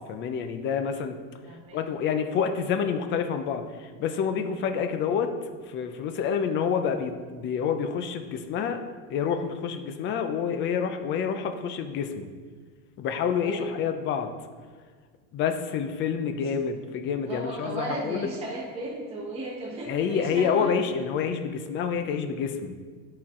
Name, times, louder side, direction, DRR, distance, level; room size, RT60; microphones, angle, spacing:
voice 1, 0.1-1.2 1.7-5.3 5.7-8.8 9.1-12.3 13.0-14.3 15.3-18.3 19.9-22.8, left 7 dB, 30° left, 7 dB, 0.4 m, -28 dB
voice 2, 1.4-1.8 13.3-13.7 16.4-16.5 17.2-20.8, right 2 dB, 15° right, -3 dB, 0.8 m, -35 dB
11.0 x 4.5 x 3.6 m, 1.5 s
cardioid pair, 155°, 42 cm